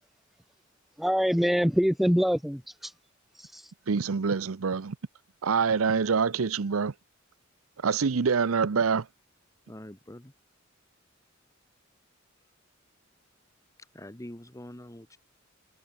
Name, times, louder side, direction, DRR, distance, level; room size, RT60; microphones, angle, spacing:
voice 1, 1.0-2.9 3.3-3.7, equal, ahead, 0.7 m, -25 dB
voice 2, 3.9-5.0 5.4-6.9 7.8-9.1, right 5 dB, 85° right, 0.6 m, -25 dB
voice 3, 9.7-10.3 13.9-15.2, left 1 dB, 15° left, 1.6 m, -44 dB
head